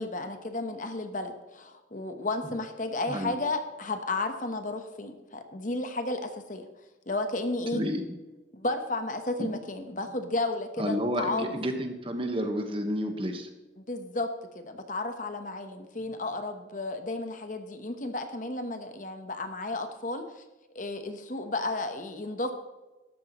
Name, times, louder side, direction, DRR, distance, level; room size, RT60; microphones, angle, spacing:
voice 1, 0.0-6.6 7.1-7.8 8.5-11.5 13.9-14.3 14.5-20.4 20.7-22.5, left 2 dB, 45° left, 7 dB, 1.1 m, -33 dB
voice 2, 3.1-3.4 7.7-8.0 9.4-9.5 10.8-13.5, equal, 30° right, 5 dB, 1.3 m, -30 dB
13.5 x 12.0 x 3.1 m, 1.2 s
head